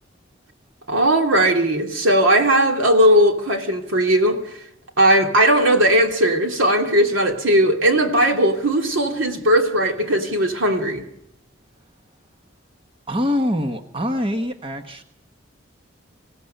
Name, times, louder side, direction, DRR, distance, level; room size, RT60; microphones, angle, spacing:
voice 1, 0.9-4.4 5.0-11.0, right 1 dB, 80° right, 2.9 m, -18 dB
voice 2, 13.1-15.0, left 1 dB, 30° right, 1.4 m, -24 dB
26.0 x 16.5 x 6.8 m
head